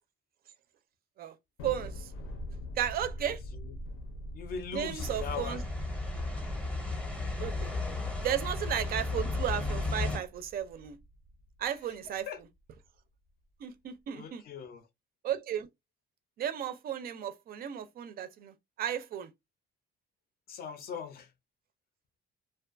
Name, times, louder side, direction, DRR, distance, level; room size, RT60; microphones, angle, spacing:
Thunder, 1.6-12.2, left 1 dB, 90° left, 0.7 m, -45 dB
voice 1, 1.6-2.1 2.8-3.4 4.7-5.6 7.4-7.7 8.2-11.0 11.6-12.3 13.6-14.4 15.2-15.7 16.4-19.3, right 10 dB, 50° right, 0.4 m, -34 dB
voice 2, 3.2-3.7 4.3-5.6 12.0-12.4 14.1-14.9 20.5-21.3, left 6 dB, 50° left, 0.5 m, -41 dB
sound 1, 5.0-10.2, left 2 dB, 5° left, 0.6 m, -34 dB
2.5 x 2.2 x 2.4 m
cardioid pair, 160°, 20 cm